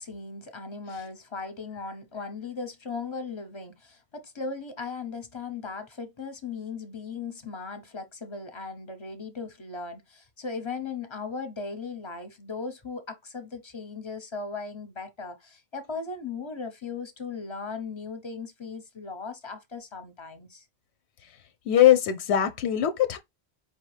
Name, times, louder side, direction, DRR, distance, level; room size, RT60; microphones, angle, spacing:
voice 1, 0.0-20.6, left 4 dB, 30° left, 0.7 m, -37 dB
voice 2, 21.7-23.2, left 11 dB, 90° left, 0.9 m, -21 dB
4.7 x 2.8 x 3.2 m
omnidirectional pair, 1.1 m